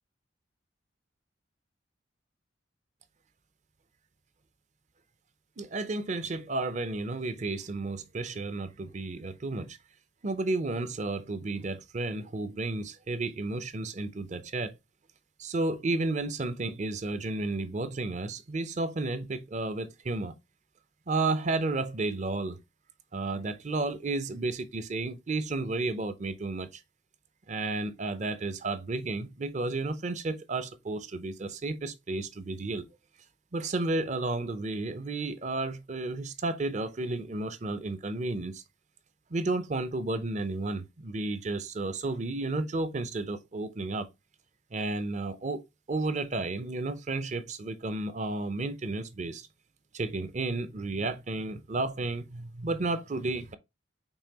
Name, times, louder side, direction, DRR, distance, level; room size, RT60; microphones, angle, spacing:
voice 1, 5.6-9.8 10.2-14.8 15.4-20.3 21.1-22.6 23.1-26.8 27.5-32.9 33.5-38.6 39.3-44.1 44.7-45.6 45.9-49.5 49.9-53.6, right 2 dB, 40° right, 0.5 m, -32 dB
5.5 x 3.3 x 2.9 m
head